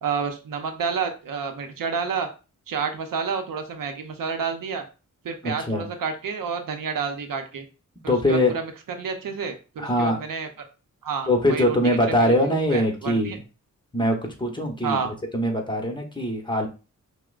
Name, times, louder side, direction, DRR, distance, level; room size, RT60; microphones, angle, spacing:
voice 1, 0.0-2.3 2.7-4.8 5.2-7.6 8.0-8.7 9.0-10.7 11.0-13.4 14.8-15.1, right 5 dB, 85° right, 6 dB, 0.7 m, -30 dB
voice 2, 5.4-5.9 8.1-8.5 9.8-10.2 11.3-13.4 13.9-15.0 15.3-16.7, left 1 dB, 15° left, 2 dB, 1.0 m, -22 dB
5.7 x 2.1 x 2.4 m, 0.32 s
cardioid pair, 70°, 33 cm